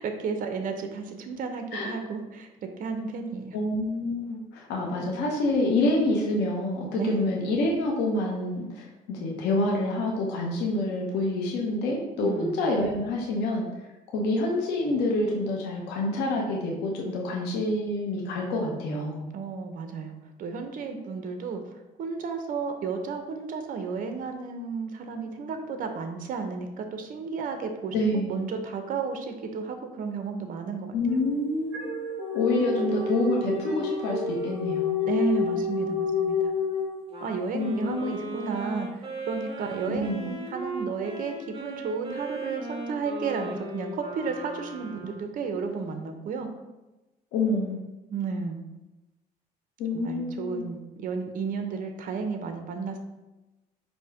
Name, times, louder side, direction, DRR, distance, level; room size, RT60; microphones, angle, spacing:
voice 1, 0.0-2.5 2.8-3.6 7.0-7.3 12.2-12.6 19.3-21.6 22.0-30.9 35.1-36.5 37.2-46.5 48.1-48.6 49.9-53.0, right 5 dB, 55° right, 6 dB, 0.6 m, -33 dB
voice 2, 3.5-13.7 14.1-19.3 27.9-28.4 30.9-31.9 32.3-35.0 37.5-38.3 39.9-40.2 47.3-47.8 49.8-50.7, left 2 dB, 90° left, -1 dB, 0.8 m, -27 dB
sound 1, 31.1-37.4, left 5 dB, 10° right, 1.1 m, -29 dB
Wind instrument woodwind instrument, 37.1-45.4, right 2 dB, 30° right, 1.1 m, -38 dB
5.2 x 2.1 x 4.7 m, 1.1 s
cardioid pair, 110°, 17 cm